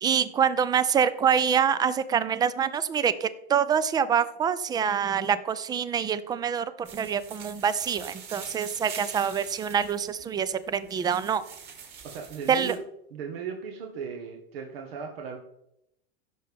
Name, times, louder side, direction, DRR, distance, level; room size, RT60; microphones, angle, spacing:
voice 1, 0.0-11.4 12.5-12.7, right 7 dB, 15° right, 15 dB, 0.4 m, -25 dB
sound 1, 6.9-12.8, right 6 dB, 35° right, 2.9 m, -44 dB
voice 2, 12.0-12.8 13.1-15.4, right 6 dB, 70° right, 2 dB, 1.6 m, -37 dB
15.5 x 6.7 x 3.5 m, 0.82 s
supercardioid pair, 135°, 31 cm